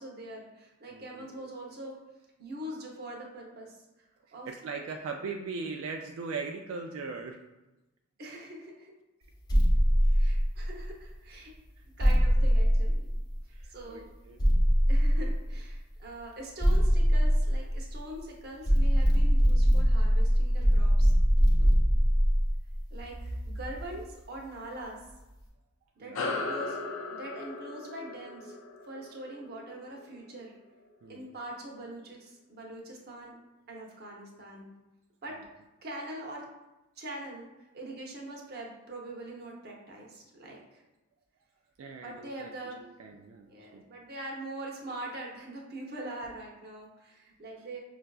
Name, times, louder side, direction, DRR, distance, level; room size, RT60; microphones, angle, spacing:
voice 1, 0.0-2.0 2.4-3.8 4.3-4.5 8.2-8.9 10.1-11.5 12.0-13.1 13.7-14.1 14.9-21.1 22.9-25.0 26.0-26.8 27.1-28.6 28.8-30.5 31.1-33.4 33.7-34.7 35.2-35.4 35.8-36.5 37.0-37.5 37.7-40.8 42.0-42.8 43.4-47.8, right 1 dB, 50° right, -1 dB, 0.8 m, -43 dB
voice 2, 0.9-1.3 4.5-7.4 10.0-10.3 13.5-14.4 21.6-22.0 26.0-26.4 31.0-31.3 41.8-42.5 42.8-43.8, right 4 dB, 90° right, 3 dB, 0.3 m, -40 dB
sound 1, 9.5-11.0 12.0-13.6 14.4-15.8 16.6-18.2 18.7-23.9, equal, 20° left, 0.5 m, -23 dB
sound 2, 26.1-31.0, left 3 dB, 75° left, 0.4 m, -38 dB
5.5 x 2.4 x 2.3 m, 1.0 s
head